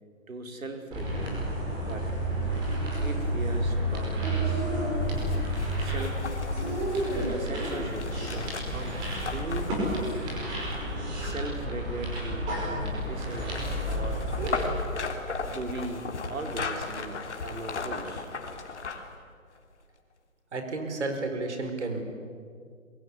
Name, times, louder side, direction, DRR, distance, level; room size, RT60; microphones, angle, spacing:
voice 1, 0.3-1.4 1.8-2.1 3.0-4.7 5.8-6.3 6.9-10.2 11.2-14.3 15.4-18.3, right 2 dB, 85° right, 5 dB, 4.7 m, -39 dB
sound 1, 0.9-14.6, right 1 dB, 10° right, 5.0 m, -30 dB
sound 2, 5.0-11.2 12.9-19.2 19.6-19.7, left 4 dB, 55° left, 3.3 m, -37 dB
voice 2, 20.5-22.0, right 3 dB, 55° right, 6 dB, 4.9 m, -32 dB
26.5 x 22.5 x 9.8 m, 2.2 s
hypercardioid pair, 170°, 40 cm